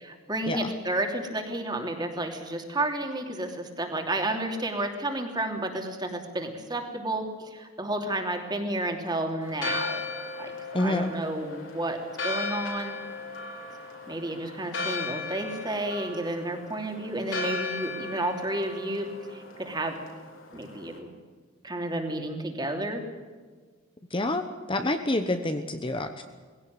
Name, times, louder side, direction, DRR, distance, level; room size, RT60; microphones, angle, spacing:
voice 1, 0.0-10.0 10.4-13.0 14.1-20.0 20.5-21.1 21.6-23.0, right 1 dB, 20° right, 4 dB, 3.0 m, -31 dB
Church bell, 9.4-21.0, left 3 dB, 65° left, 4.8 m, -36 dB
voice 2, 10.7-11.1 24.1-26.2, left 2 dB, 25° left, 7 dB, 1.0 m, -28 dB
21.0 x 17.0 x 9.4 m, 1.5 s
head